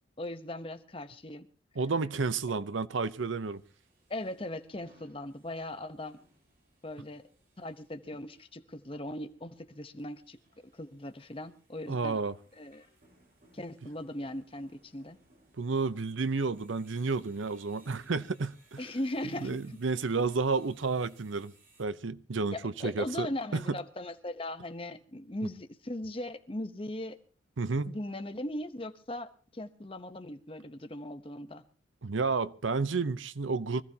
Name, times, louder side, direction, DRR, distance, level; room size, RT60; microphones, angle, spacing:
voice 1, 0.2-1.5 4.1-6.2 6.8-7.2 7.6-10.4 10.7-12.2 12.6-12.9 13.5-15.2 18.8-19.8 22.5-27.2 27.8-31.6, left 1 dB, 30° left, 0.9 m, -39 dB
voice 2, 1.8-3.6 11.9-12.3 15.6-18.8 19.4-21.5 21.8-23.3 23.5-23.8 27.6-28.0 32.0-33.8, right 4 dB, 85° right, 0.7 m, -31 dB
sound 1, 3.4-21.8, right 2 dB, 50° right, 4.9 m, -65 dB
24.5 x 15.0 x 2.8 m
head